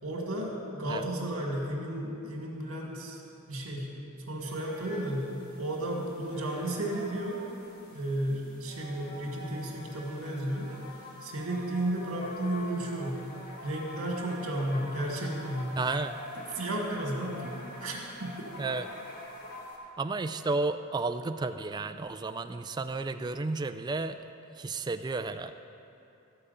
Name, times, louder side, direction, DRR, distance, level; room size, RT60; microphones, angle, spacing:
voice 1, 0.0-3.2 3.5-3.9 4.3-5.3 5.6-7.4 7.9-10.7 11.2-13.2 13.6-15.8 16.3-18.3, right 1 dB, 70° right, 0 dB, 2.1 m, -33 dB
sound 1, 4.4-19.8, left 1 dB, 45° left, 1.8 m, -45 dB
voice 2, 15.8-16.2 18.6-18.8 20.0-24.2 24.5-25.5, right 3 dB, 20° right, 9 dB, 0.3 m, -32 dB
13.5 x 5.0 x 8.3 m, 2.9 s
head